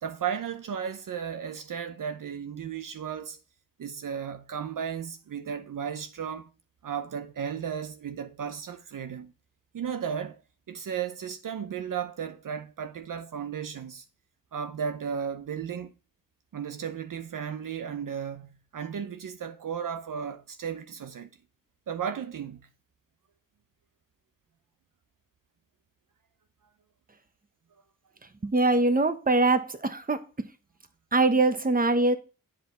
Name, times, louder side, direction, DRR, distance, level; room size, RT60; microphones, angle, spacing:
voice 1, 0.0-3.4 3.8-6.5 6.8-9.3 9.7-10.4 10.7-14.0 14.5-15.9 16.5-21.3 21.9-22.7, right 7 dB, 65° right, 0.7 m, -34 dB
voice 2, 28.4-30.2 31.1-32.2, right 2 dB, 25° right, 1.1 m, -23 dB
8.1 x 5.1 x 3.9 m
cardioid pair, 55°, 34 cm